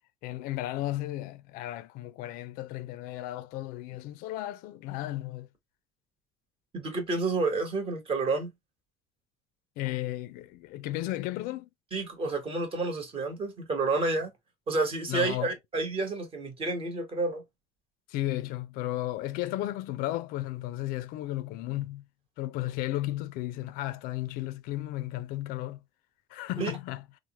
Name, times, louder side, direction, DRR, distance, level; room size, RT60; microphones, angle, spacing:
voice 1, 0.2-5.5 9.8-11.7 15.1-15.5 18.1-22.0 22.4-25.8 26.3-27.0, left 15 dB, 70° left, 0.4 m, -34 dB
voice 2, 6.7-8.5 11.9-14.3 14.7-17.4 26.6-26.7, right 3 dB, 35° right, 1.1 m, -30 dB
3.1 x 2.0 x 2.8 m
supercardioid pair, 95°, 15 cm